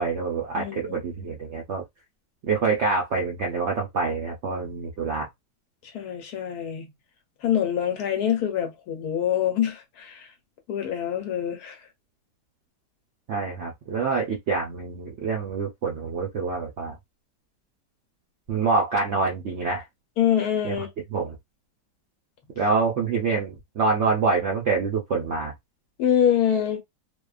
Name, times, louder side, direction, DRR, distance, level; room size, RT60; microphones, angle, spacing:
voice 1, 0.0-1.8 2.5-5.3 13.3-17.0 18.5-19.8 20.6-20.7 21.1-21.4 22.6-25.5, right 4 dB, 65° right, 0.7 m, -26 dB
voice 2, 0.5-1.0 5.8-6.9 7.4-10.3 10.7-11.8 20.2-20.9 26.0-26.8, left 9 dB, 70° left, 1.1 m, -25 dB
2.8 x 2.2 x 2.3 m
omnidirectional pair, 1.8 m